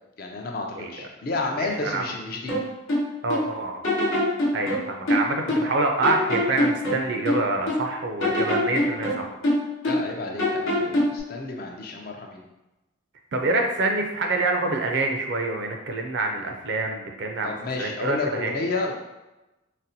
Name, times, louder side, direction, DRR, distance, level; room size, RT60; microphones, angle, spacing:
voice 1, 0.2-2.5 9.9-12.4 17.4-18.9, left 3 dB, 45° left, 2 dB, 0.4 m, -31 dB
voice 2, 0.7-1.1 1.6-2.1 3.2-3.9 4.5-9.3 13.3-18.6, right 2 dB, 60° right, 3 dB, 0.4 m, -26 dB
sound 1, 2.5-3.5 3.8-5.8 6.0-7.9 8.2-10.1 10.4-11.2, left 1 dB, 80° left, 0.9 m, -24 dB
4.0 x 2.1 x 2.7 m, 1.0 s
head